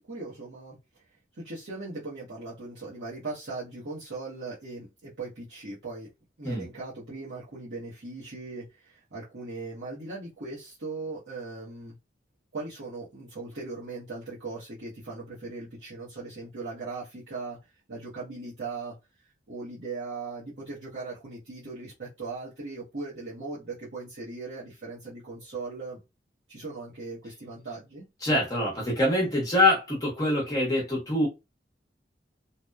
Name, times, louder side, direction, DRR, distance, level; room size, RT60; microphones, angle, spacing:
voice 1, 0.1-0.8 1.3-6.1 6.4-11.9 12.5-17.6 17.9-18.9 19.5-26.0 26.5-28.0, right 3 dB, 70° right, 0.8 m, -39 dB
voice 2, 28.2-31.3, left 1 dB, 20° left, 0.8 m, -25 dB
2.9 x 2.0 x 2.2 m
head